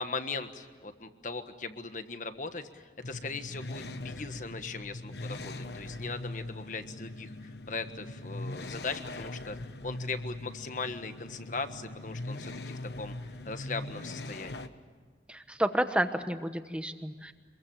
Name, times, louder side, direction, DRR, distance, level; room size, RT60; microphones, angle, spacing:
voice 1, 0.0-9.6 9.8-14.7, left 4 dB, 45° left, 9 dB, 1.5 m, -39 dB
sound 1, 3.0-14.7, left 2 dB, 70° left, 1.1 m, -41 dB
voice 2, 15.3-17.3, right 1 dB, 5° right, 8 dB, 1.1 m, -30 dB
26.5 x 22.5 x 9.0 m, 1.5 s
head